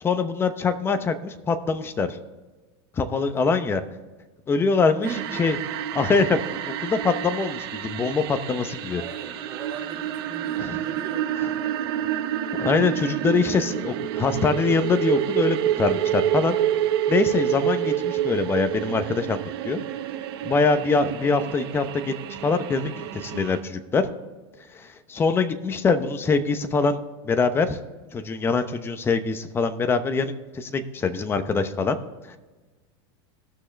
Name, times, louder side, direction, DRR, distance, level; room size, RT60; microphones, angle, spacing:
voice 1, 0.0-2.2 2.9-3.8 4.5-5.1 5.4-5.6 5.9-9.0 12.6-16.6 17.1-19.8 20.4-22.1 22.4-24.1 24.7-27.0 27.2-27.8 28.1-32.0 32.3-32.4, left 4 dB, 15° left, 10 dB, 0.8 m, -24 dB
voice 2, 5.0-5.5 8.9-12.1, right 5 dB, 30° right, 0 dB, 2.0 m, -39 dB
sound 1, 5.0-23.6, right 11 dB, 70° right, 1.3 m, -28 dB
18.0 x 6.2 x 3.3 m, 1.3 s
supercardioid pair, 145°, 14 cm